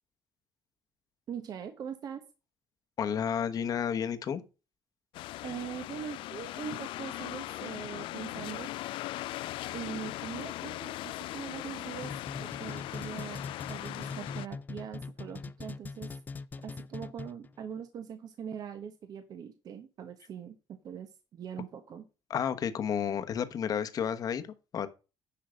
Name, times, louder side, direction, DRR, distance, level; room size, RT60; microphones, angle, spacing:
voice 1, 1.3-2.2 5.4-8.7 9.7-12.1 12.4-13.4 13.7-16.2 16.6-20.6 20.8-22.1, right 8 dB, 45° right, 1.0 m, -42 dB
voice 2, 3.0-4.4 22.3-24.5 24.7-24.9, left 8 dB, 45° left, 1.1 m, -31 dB
sound 1, 5.1-14.5, left 16 dB, 75° left, 0.3 m, -39 dB
sound 2, 12.0-17.5, left 4 dB, 20° left, 0.5 m, -41 dB
10.5 x 5.6 x 5.0 m
cardioid pair, 155°, 9 cm